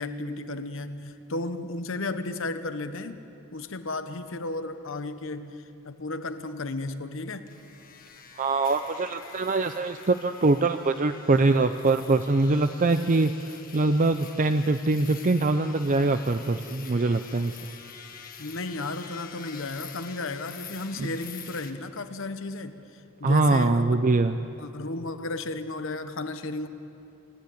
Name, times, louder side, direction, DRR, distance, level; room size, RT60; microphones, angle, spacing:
voice 1, 0.0-3.2 3.5-7.5 18.4-23.9 24.6-26.7, left 2 dB, 65° left, 10 dB, 1.0 m, -34 dB
sound 1, 7.5-21.7, left 7 dB, 40° left, 1.4 m, -47 dB
voice 2, 8.4-13.3 13.7-17.6 21.0-21.1 23.2-24.4, right 3 dB, 35° right, 8 dB, 0.5 m, -23 dB
27.0 x 10.5 x 9.6 m, 2.8 s
head